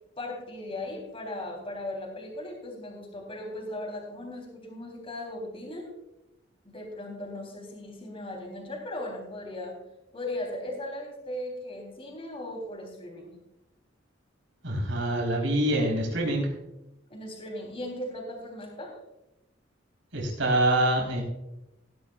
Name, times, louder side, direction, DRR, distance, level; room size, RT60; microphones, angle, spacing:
voice 1, 0.2-5.9 6.6-9.8 10.1-13.3 17.1-18.9, left 1 dB, 30° left, 1 dB, 3.6 m, -37 dB
voice 2, 14.6-16.5 20.1-21.2, right 1 dB, 80° right, 0 dB, 4.2 m, -25 dB
17.0 x 11.5 x 2.5 m, 0.91 s
head